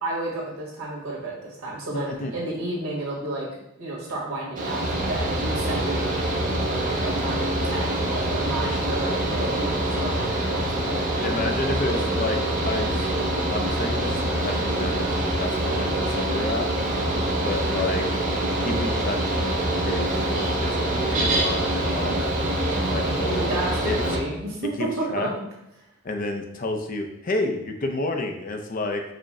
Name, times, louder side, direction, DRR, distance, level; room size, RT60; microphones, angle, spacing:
voice 1, 0.0-3.5 3.8-6.1 6.6-11.3 22.7-25.3 25.8-25.9, right 2 dB, 90° right, -3 dB, 1.6 m, -32 dB
voice 2, 1.9-2.3 11.2-12.9 13.5-16.7 17.4-18.1 18.6-22.2 22.9-23.5 23.8-24.0 24.8-25.3 26.0-29.0, left 2 dB, 40° left, 4 dB, 0.5 m, -30 dB
Mechanical fan, 4.5-24.2, right 1 dB, 40° right, 0.7 m, -25 dB
4.9 x 2.1 x 4.8 m, 0.84 s
head